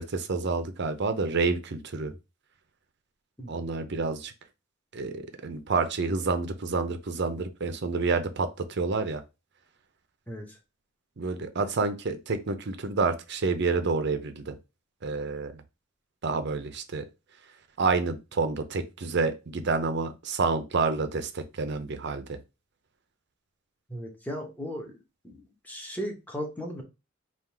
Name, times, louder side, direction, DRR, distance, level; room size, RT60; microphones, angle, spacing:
voice 1, 0.0-2.1 3.5-4.3 4.9-9.2 11.2-14.6 15.0-15.6 16.2-17.0 17.8-22.4, right 4 dB, 55° right, 0.6 m, -29 dB
voice 2, 10.3-10.6 23.9-24.9 25.2-26.8, equal, 10° left, 1.0 m, -36 dB
3.7 x 2.5 x 4.6 m
head